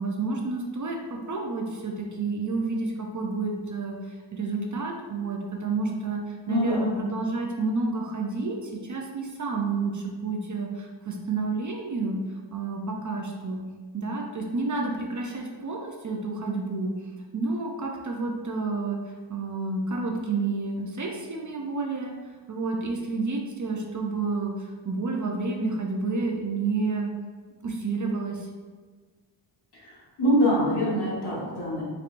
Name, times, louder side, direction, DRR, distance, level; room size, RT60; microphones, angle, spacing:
voice 1, 0.0-12.2 12.5-13.6 13.9-19.0 19.3-22.1 22.5-27.1 27.6-28.5, right 3 dB, 45° right, 0 dB, 0.5 m, -30 dB
voice 2, 6.5-6.9 29.8-31.8, equal, 60° left, -6 dB, 1.4 m, -24 dB
4.2 x 3.2 x 2.5 m, 1.5 s
wide cardioid pair, 85°, 45 cm